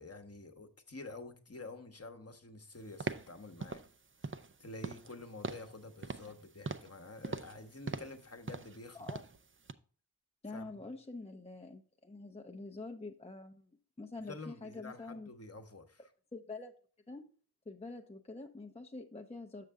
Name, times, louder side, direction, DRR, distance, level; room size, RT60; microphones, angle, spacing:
voice 1, 0.0-3.8 4.2-4.3 4.6-9.1 10.5-10.9 14.2-16.0, left 2 dB, 35° left, 1.0 m, -49 dB
sound 1, 3.0-3.3 3.6-3.9 4.2-4.5 4.8-5.1 5.4-5.7 6.0-6.3 6.7-7.0 7.2-7.6 7.9-8.2 8.5-8.8 9.1-9.4 9.7-9.8, right 4 dB, 30° right, 0.5 m, -41 dB
voice 2, 10.4-13.7 14.0-15.3 16.3-16.7 17.1-17.3 17.7-19.6, left 3 dB, 15° left, 0.6 m, -46 dB
6.7 x 6.5 x 3.5 m
cardioid pair, 45°, 41 cm